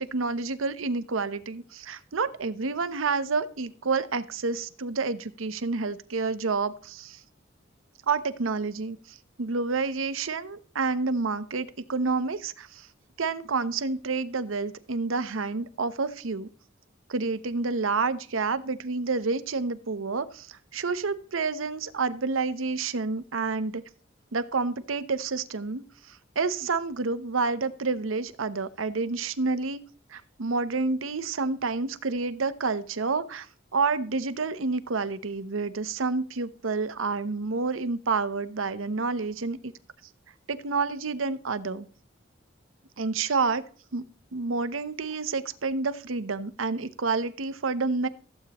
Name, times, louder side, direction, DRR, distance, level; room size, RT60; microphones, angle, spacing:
voice 1, 0.0-7.2 8.1-12.9 13.2-16.5 17.1-23.8 24.3-29.8 30.1-33.5 33.7-39.7 40.5-41.9 43.0-43.6 43.9-44.0 44.3-48.1, right 4 dB, 90° right, 13 dB, 0.8 m, -29 dB
15.0 x 8.2 x 3.0 m, 0.43 s
head